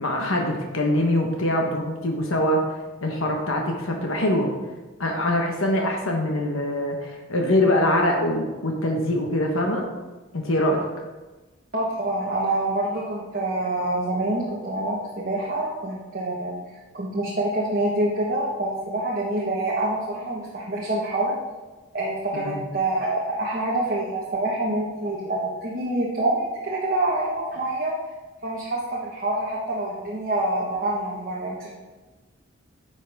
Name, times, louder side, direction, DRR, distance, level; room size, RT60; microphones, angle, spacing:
voice 1, 0.0-2.7 3.0-4.5 5.0-9.8 10.3-10.8 22.3-22.6, left 1 dB, 90° left, 1 dB, 1.2 m, -23 dB
voice 2, 11.7-16.5 16.9-21.4 21.9-27.9 28.4-31.7, right 1 dB, 45° right, -5 dB, 1.3 m, -26 dB
10.5 x 6.1 x 3.5 m, 1.2 s
head